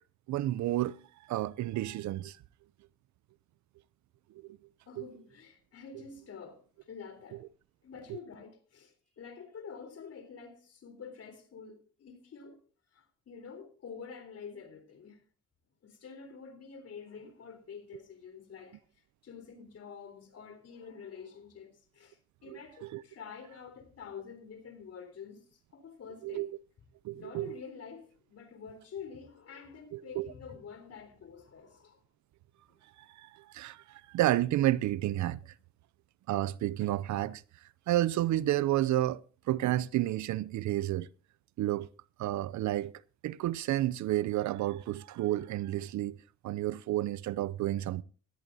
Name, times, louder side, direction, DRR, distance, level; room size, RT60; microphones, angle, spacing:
voice 1, 0.3-2.4 4.3-4.6 5.0-5.1 8.1-8.2 22.5-23.0 26.2-26.5 27.0-27.6 29.9-30.3 33.0-35.5 36.3-41.1 41.6-41.9 42.2-42.9 43.2-46.2 46.4-48.0, right 14 dB, 70° right, 0.5 m, -31 dB
voice 2, 4.9-7.4 7.8-12.6 12.9-15.2 15.8-18.8 19.2-26.5 27.1-32.0, left 6 dB, 55° left, 3.6 m, -48 dB
17.5 x 13.5 x 2.7 m
cardioid pair, 90°, 30 cm